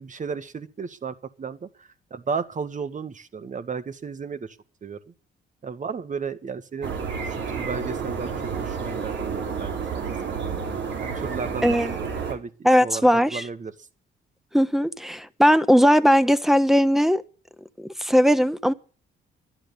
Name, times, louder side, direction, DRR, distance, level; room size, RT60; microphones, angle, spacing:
voice 1, 0.0-5.1 5.6-8.3 8.6-10.1 11.0-13.9, right 5 dB, 40° right, 1.8 m, -34 dB
sound 1, 6.8-12.3, right 6 dB, 65° right, 4.0 m, -30 dB
voice 2, 12.6-13.4 14.5-17.2 18.0-18.7, equal, ahead, 1.2 m, -18 dB
12.0 x 11.5 x 7.0 m
cardioid pair, 90°, 20 cm